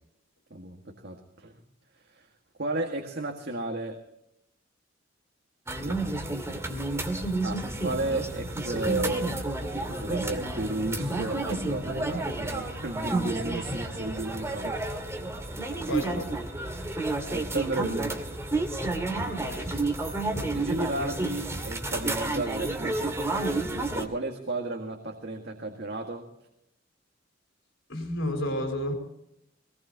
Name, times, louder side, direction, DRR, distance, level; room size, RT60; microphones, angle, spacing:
voice 1, 0.5-1.5 2.1-2.3 2.6-4.0 5.8-6.0 7.4-9.6 9.9-14.8 16.9-18.2 20.4-26.3, right 2 dB, 60° right, 2 dB, 1.9 m, -33 dB
sound 1, 5.7-24.0, right 2 dB, 15° right, 2.2 m, -31 dB
voice 2, 15.9-16.4 19.2-19.8 27.9-28.9, left 1 dB, 80° left, 4 dB, 4.2 m, -32 dB
22.5 x 19.0 x 2.9 m, 0.79 s
head